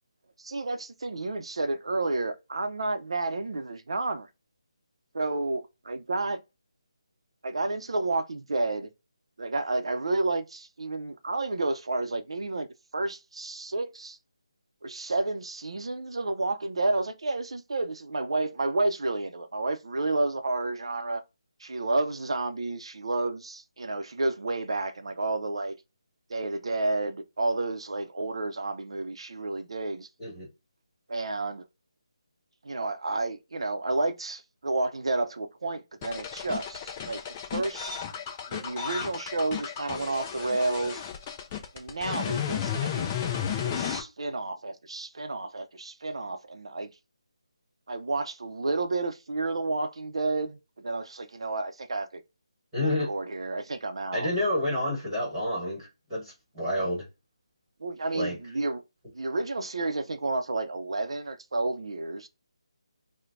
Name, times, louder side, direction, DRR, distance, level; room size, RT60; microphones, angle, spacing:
voice 1, 0.4-4.3 5.1-6.4 7.4-8.9 9.4-14.2 14.8-21.2 21.6-25.7 26.3-30.1 31.1-31.6 32.6-37.2 37.5-38.0 38.5-41.0 41.7-43.2 43.6-46.9 47.9-52.2 52.8-54.3 57.8-58.8 59.1-62.3, right 2 dB, 70° right, 0.5 m, -31 dB
sound 1, 36.0-44.0, left 8 dB, 15° left, 0.4 m, -33 dB
voice 2, 52.7-53.1 54.1-57.0 58.1-58.3, left 1 dB, 10° right, 1.4 m, -29 dB
4.4 x 2.1 x 2.5 m
figure-of-eight pair, 170°, 3 cm